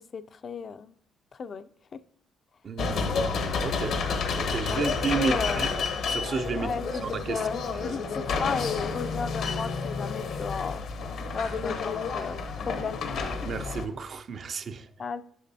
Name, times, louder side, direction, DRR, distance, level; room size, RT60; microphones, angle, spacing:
voice 1, 0.1-0.9 1.3-1.7 3.1-3.2 4.7-4.8 5.2-5.6 6.6-10.8 11.3-13.0 15.0-15.2, left 5 dB, 50° left, 0.3 m, -34 dB
voice 2, 2.6-4.0 4.4-5.7 6.1-6.7 7.0-7.4 7.7-8.0 11.2-11.4 13.5-14.9, right 5 dB, 50° right, 0.4 m, -32 dB
sound 1, 2.8-13.9, left 5 dB, 70° left, 0.8 m, -30 dB
sound 2, 3.6-10.5, left 4 dB, 90° left, 1.1 m, -41 dB
8.3 x 5.9 x 2.7 m
cardioid pair, 90°, 0 cm